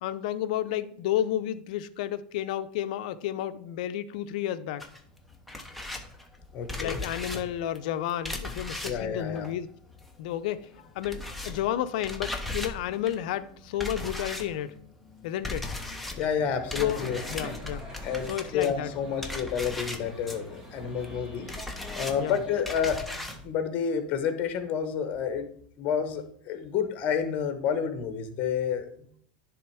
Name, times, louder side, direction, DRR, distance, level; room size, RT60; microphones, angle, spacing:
voice 1, 0.0-4.8 6.8-9.7 10.2-10.7 10.9-14.7 15.2-15.7 16.8-17.9 18.3-18.9 22.2-22.4, left 11 dB, 65° left, 13 dB, 0.6 m, -31 dB
sound 1, 4.8-10.3 10.6-23.5, left 2 dB, ahead, 0.8 m, -38 dB
voice 2, 6.5-7.0 8.8-9.5 16.1-17.2 18.0-21.5 22.0-25.5 25.8-29.1, left 7 dB, 40° left, 9 dB, 1.1 m, -30 dB
sound 2, 16.4-22.6, equal, 20° right, 1.6 m, -44 dB
10.0 x 3.5 x 4.7 m, 0.62 s
supercardioid pair, 140°, 5 cm